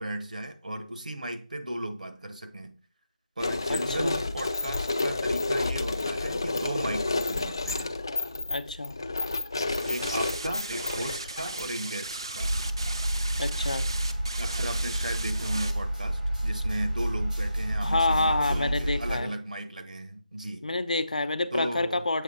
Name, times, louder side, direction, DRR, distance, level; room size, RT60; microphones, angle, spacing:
voice 1, 0.0-2.7 3.4-7.9 9.8-12.5 14.4-20.7 21.5-22.0, right 1 dB, 70° right, 8 dB, 1.2 m, -36 dB
sound 1, 3.4-11.9, left 3 dB, 30° left, 0.4 m, -30 dB
voice 2, 3.7-4.2 8.5-9.0 13.4-13.9 17.8-19.3 20.6-22.2, left 2 dB, 65° left, 11 dB, 0.7 m, -28 dB
sound 2, 9.7-15.7, right 2 dB, 35° right, 0.6 m, -37 dB
sound 3, 12.4-19.2, right 1 dB, 90° right, 2.7 m, -29 dB
7.3 x 4.4 x 4.2 m, 0.40 s
figure-of-eight pair, 175°, 4 cm